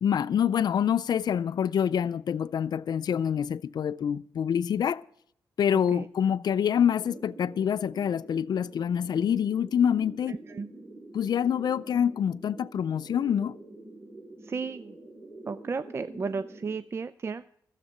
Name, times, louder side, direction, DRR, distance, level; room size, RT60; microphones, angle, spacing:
voice 1, 0.0-5.1 5.6-10.4 11.1-13.5, left 8 dB, 60° left, 0.4 m, -26 dB
sound 1, 6.8-16.7, right 2 dB, 60° right, 5.3 m, -47 dB
voice 2, 10.3-10.7 14.4-14.9 15.5-17.4, right 4 dB, 35° right, 0.4 m, -34 dB
13.0 x 7.4 x 7.2 m
cardioid pair, 85°, 8 cm